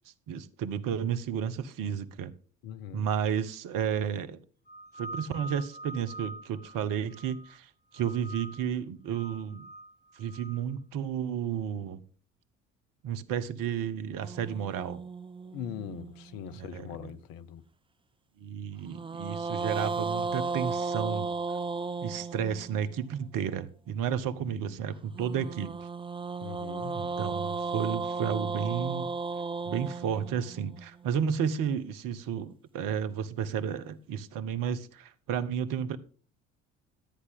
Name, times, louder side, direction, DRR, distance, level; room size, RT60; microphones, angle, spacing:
voice 1, 0.3-2.3 2.9-4.4 5.0-9.7 10.2-12.0 13.0-15.0 16.6-17.1 18.4-21.3 22.0-25.9 26.9-29.1 29.6-36.0, right 8 dB, 55° right, 1.3 m, -32 dB
voice 2, 2.6-3.0 15.5-17.6 24.4-24.8 26.4-27.2, left 9 dB, 60° left, 1.1 m, -41 dB
sound 1, 4.7-7.6 7.9-8.7 9.1-10.6, right 2 dB, 25° left, 5.7 m, -45 dB
sound 2, 14.2-16.6 18.8-23.0 25.1-31.3, right 4 dB, 15° right, 0.6 m, -35 dB
13.5 x 9.6 x 3.7 m
figure-of-eight pair, 60°, 39 cm